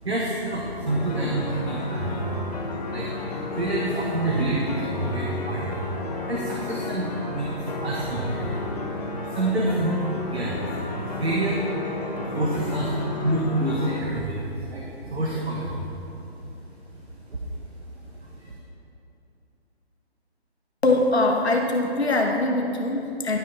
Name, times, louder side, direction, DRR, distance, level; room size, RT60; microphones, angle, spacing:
voice 1, 0.0-2.6 2.8-3.1 3.5-8.6 9.2-11.6 12.3-16.3 17.3-17.4 18.2-18.5, right 2 dB, 75° right, -3 dB, 1.3 m, -28 dB
sound 1, 0.9-14.0, left 2 dB, 40° left, 1.0 m, -32 dB
voice 2, 20.8-23.4, left 2 dB, 75° left, 1 dB, 1.5 m, -22 dB
11.0 x 5.7 x 4.1 m, 2.9 s
figure-of-eight pair, 150°, 33 cm